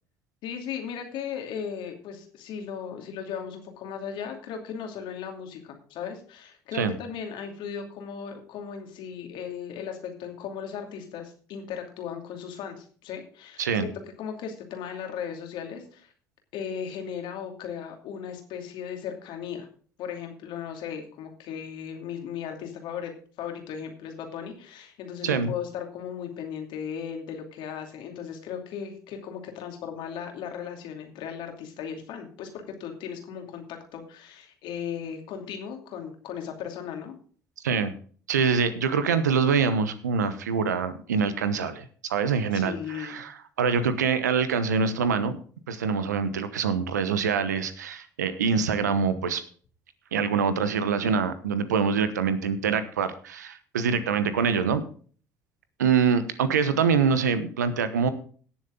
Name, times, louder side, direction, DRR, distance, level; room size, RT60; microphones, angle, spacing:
voice 1, 0.4-13.9 14.2-16.1 16.5-19.7 20.0-23.1 23.4-37.1 42.5-43.2, left 7 dB, 60° left, 4 dB, 2.6 m, -37 dB
voice 2, 25.2-25.5 37.6-37.9 38.3-45.4 45.7-49.4 50.1-54.8 55.8-58.1, right 6 dB, 85° right, 12 dB, 1.0 m, -25 dB
17.0 x 7.2 x 3.8 m, 0.43 s
hypercardioid pair, 60°, 9 cm